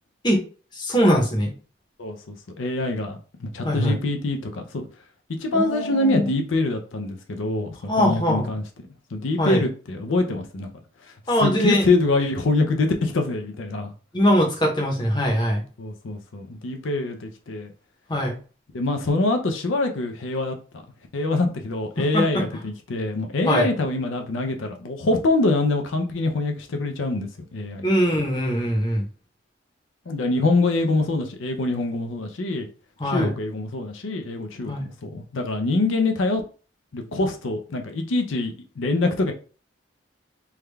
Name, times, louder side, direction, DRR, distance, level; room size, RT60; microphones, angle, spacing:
voice 1, 0.7-1.5 3.6-4.0 5.5-6.3 7.9-8.5 9.4-9.6 11.3-11.9 14.1-15.6 18.1-18.4 22.1-22.4 23.5-23.7 27.8-29.0 33.0-33.3 34.7-34.9, equal, 25° left, 0.8 m, -21 dB
voice 2, 2.0-4.8 5.4-8.6 9.1-10.7 11.4-13.9 15.8-17.7 18.7-20.6 21.1-27.9 30.1-32.7 33.0-36.4 36.9-39.3, left 2 dB, 85° left, 0.5 m, -24 dB
3.5 x 2.3 x 3.2 m
head